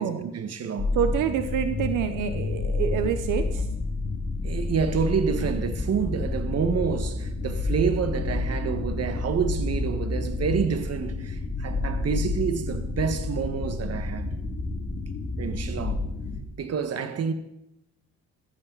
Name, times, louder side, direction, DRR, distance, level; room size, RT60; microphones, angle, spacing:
voice 1, 0.0-1.0 4.4-14.3 15.4-16.0 16.6-17.3, right 6 dB, 55° right, 1.7 m, -28 dB
sound 1, 0.8-16.4, left 3 dB, 40° left, 2.7 m, -29 dB
voice 2, 0.9-3.7 5.4-5.5, right 8 dB, 90° right, 1.1 m, -27 dB
16.0 x 14.0 x 4.1 m
cardioid pair, 90°, 30 cm